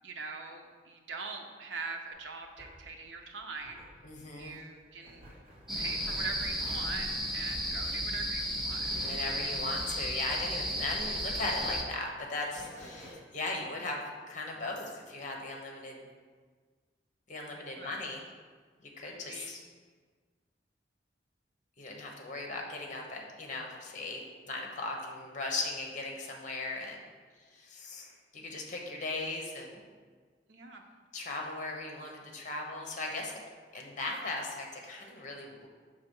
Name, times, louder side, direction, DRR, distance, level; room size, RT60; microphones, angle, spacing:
voice 1, 0.0-3.8 4.4-5.3 5.7-8.9 17.5-18.2 19.1-19.6 30.5-30.8, right 4 dB, 90° right, 3 dB, 0.7 m, -42 dB
sound 1, 2.1-11.2 11.5-13.1, equal, 35° right, 1.8 m, -51 dB
voice 2, 4.0-4.6 9.0-16.1 17.3-18.2 18.8-19.6 21.8-27.0 27.5-29.8 31.1-33.3 33.7-35.7, left 2 dB, 45° left, 1 dB, 0.9 m, -38 dB
sound 2, 5.7-11.8, equal, ahead, 0.6 m, -34 dB
5.7 x 3.4 x 5.3 m, 1.5 s
head